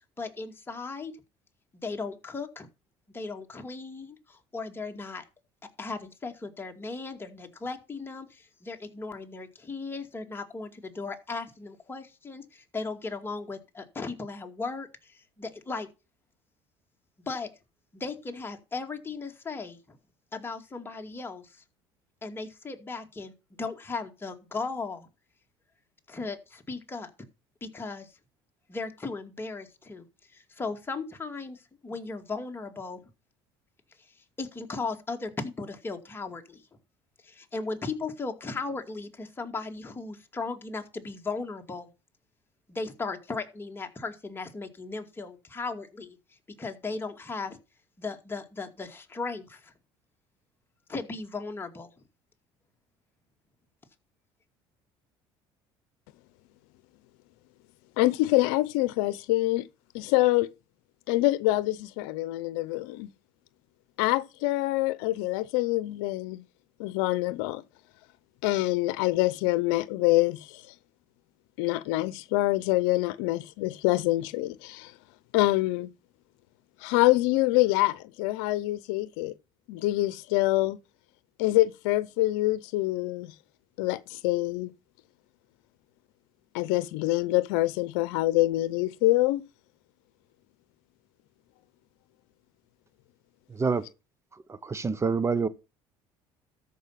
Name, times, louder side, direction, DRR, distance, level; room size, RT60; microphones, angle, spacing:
voice 1, 0.2-1.1 1.8-2.7 3.1-5.2 5.8-15.9 17.3-17.5 17.9-19.8 20.3-21.6 22.2-23.3 23.6-25.1 26.1-27.1 27.6-28.1 28.7-33.0 34.1-36.6 37.2-41.9 42.7-47.6 48.0-49.7 50.9-51.9, left 3 dB, 20° left, 2.3 m, -37 dB
voice 2, 58.0-59.7 59.9-60.5 61.1-63.1 64.0-66.4 66.8-67.6 68.4-70.6 71.6-74.9 75.3-75.9 76.8-79.3 79.7-80.8 81.4-83.3 83.8-84.7 86.5-89.4, left 18 dB, 85° left, 0.7 m, -25 dB
voice 3, 93.5-93.9 94.5-95.5, right 5 dB, 25° right, 0.8 m, -27 dB
13.5 x 5.5 x 5.8 m
supercardioid pair, 90°, 12 cm